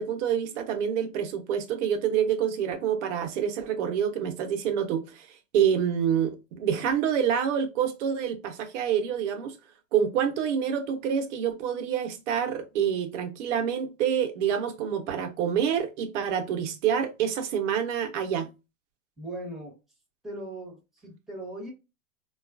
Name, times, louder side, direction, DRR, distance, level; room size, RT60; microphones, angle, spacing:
voice 1, 0.0-5.3 5.5-9.6 9.9-18.5, right 8 dB, 60° right, 0.9 m, -27 dB
voice 2, 19.2-19.8 20.2-21.7, right 1 dB, ahead, 1.1 m, -39 dB
3.7 x 2.3 x 2.4 m
hypercardioid pair, 120°, 41 cm